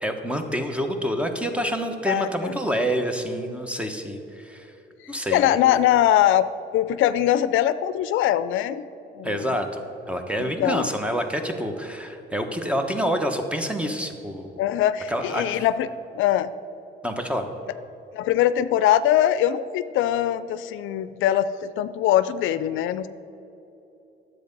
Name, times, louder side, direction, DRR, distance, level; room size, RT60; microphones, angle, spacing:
voice 1, 0.0-4.7 5.1-5.5 9.2-14.5 15.1-15.6 17.0-17.5, equal, 5° right, 6 dB, 1.1 m, -27 dB
voice 2, 2.1-2.6 5.3-6.5 6.7-8.9 9.2-9.5 10.4-10.9 14.6-15.9 16.1-16.5 18.1-23.1, left 11 dB, 85° left, 14 dB, 0.4 m, -22 dB
10.5 x 7.7 x 5.3 m, 2.9 s
cardioid pair, 90°, 20 cm